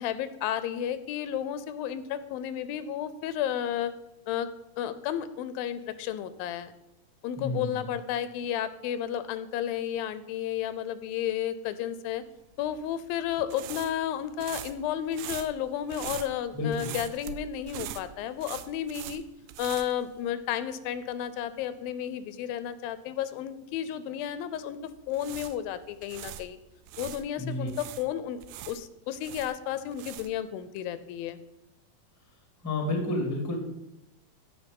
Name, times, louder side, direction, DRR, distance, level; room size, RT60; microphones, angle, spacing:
voice 1, 0.0-3.9 4.3-4.5 4.8-6.7 7.2-12.2 12.6-19.2 19.6-24.8 25.1-26.6 27.0-31.4, left 10 dB, 85° left, 13 dB, 2.4 m, -32 dB
voice 2, 7.4-7.8 16.5-16.9 27.4-27.7 32.6-33.6, left 2 dB, 10° left, 1 dB, 1.1 m, -30 dB
sound 1, 12.6-20.7 21.0-21.2 24.9-27.2 27.7-30.5, right 11 dB, 80° right, 2.3 m, -42 dB
14.5 x 5.8 x 5.3 m, 0.90 s
omnidirectional pair, 4.1 m